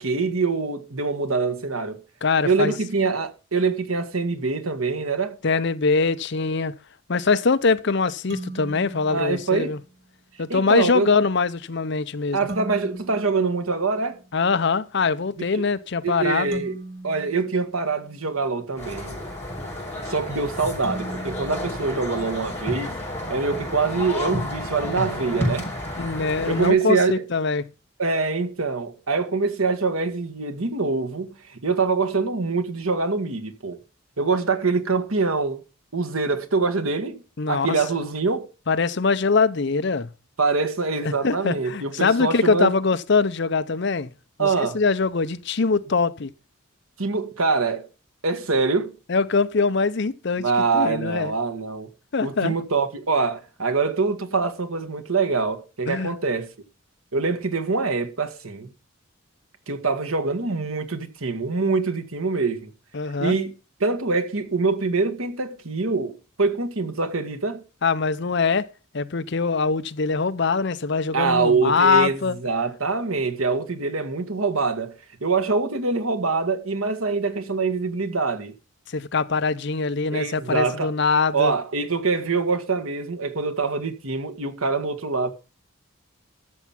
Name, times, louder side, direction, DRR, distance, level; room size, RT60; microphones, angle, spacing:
voice 1, 0.0-2.0 2.4-5.4 9.1-9.7 10.5-11.1 12.3-14.2 15.5-15.6 16.0-16.7 17.0-19.2 20.1-22.9 23.3-25.7 26.5-27.2 28.0-33.8 34.2-35.6 35.9-37.2 37.5-38.5 40.4-42.7 44.4-44.8 47.0-47.9 48.2-49.0 50.4-51.9 52.2-56.5 57.1-58.7 59.7-62.7 63.2-63.5 63.8-67.6 71.1-78.5 80.1-80.9 81.3-85.3, right 4 dB, 85° right, 1.7 m, -24 dB
voice 2, 2.2-2.7 5.4-6.8 7.1-9.8 10.4-12.4 14.3-16.6 26.0-27.7 37.4-37.7 38.7-40.1 41.0-44.1 44.4-46.3 49.1-51.3 52.1-52.6 55.9-56.1 62.9-63.4 67.8-72.4 78.9-81.5, left 4 dB, 55° left, 0.7 m, -23 dB
sound 1, 8.3-10.0 12.5-14.5 16.5-18.6 20.8-22.9, right 2 dB, 60° right, 2.6 m, -40 dB
sound 2, 18.8-26.7, left 1 dB, 10° left, 6.8 m, -31 dB
13.0 x 7.2 x 5.9 m
head